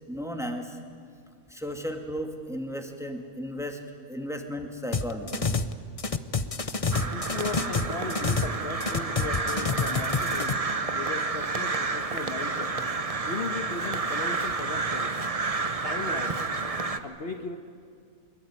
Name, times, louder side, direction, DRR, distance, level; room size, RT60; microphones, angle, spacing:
voice 1, 0.1-0.8 1.5-3.8 4.1-5.5, equal, ahead, 3 dB, 2.4 m, -34 dB
sound 1, 4.9-5.7 6.0-8.6 8.8-10.5, left 4 dB, 30° left, 0.9 m, -28 dB
voice 2, 6.9-10.6 10.9-12.8 13.3-15.1 15.6-16.4 17.0-17.6, left 4 dB, 45° left, 4 dB, 1.5 m, -37 dB
Crow, 6.9-17.0, right 3 dB, 30° right, 1.1 m, -30 dB
24.5 x 22.0 x 9.7 m, 2.3 s
omnidirectional pair, 1.5 m